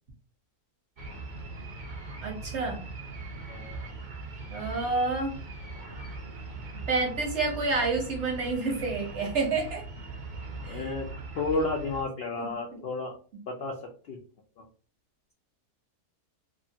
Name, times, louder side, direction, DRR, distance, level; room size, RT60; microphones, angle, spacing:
sound 1, 1.0-12.0, right 3 dB, 70° right, 0.4 m, -40 dB
voice 1, 2.2-2.8 4.5-5.3 6.9-9.8 10.6-10.9 12.4-12.8, right 3 dB, 55° right, 0 dB, 1.0 m, -29 dB
voice 2, 3.5-3.8 10.6-11.1 11.4-13.1 13.6-13.7 14.1-14.2, left 3 dB, 85° left, 1 dB, 0.5 m, -31 dB
2.8 x 2.5 x 2.7 m, 0.40 s
omnidirectional pair, 1.7 m